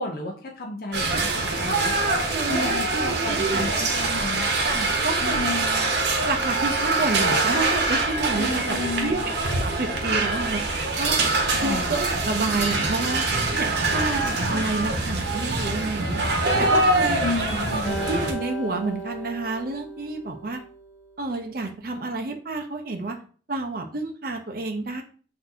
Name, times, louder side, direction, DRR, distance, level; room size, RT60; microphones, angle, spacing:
voice 1, 0.0-1.9 2.5-4.5 5.2-5.8 8.4-9.2 11.5-11.9 17.2-18.1, left 2 dB, 50° left, 0 dB, 0.6 m, -31 dB
sound 1, 0.9-18.3, right 2 dB, 65° right, 1.0 m, -24 dB
voice 2, 3.1-3.6 4.6-5.9 6.3-13.2 13.5-16.2 16.6-17.2 17.7-20.6 21.2-23.2 23.5-25.0, right 3 dB, 50° right, 3 dB, 0.6 m, -30 dB
Acoustic guitar, 17.8-21.2, right 2 dB, 5° left, 1.0 m, -36 dB
6.0 x 2.7 x 2.7 m, 0.42 s
head